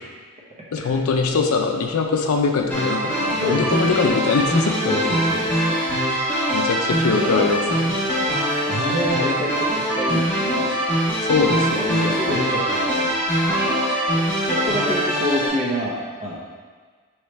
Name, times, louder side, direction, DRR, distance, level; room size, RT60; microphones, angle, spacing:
voice 1, 0.7-4.8 6.5-8.0 11.3-12.1, left 4 dB, 80° left, 4 dB, 0.4 m, -22 dB
sound 1, 2.7-15.5, equal, 10° left, 1.0 m, -22 dB
voice 2, 3.4-4.0 4.8-5.5 8.1-8.2 8.6-10.7 11.7-13.8 14.4-16.3, equal, 30° right, -5 dB, 0.9 m, -28 dB
4.7 x 3.1 x 3.2 m, 1.5 s
head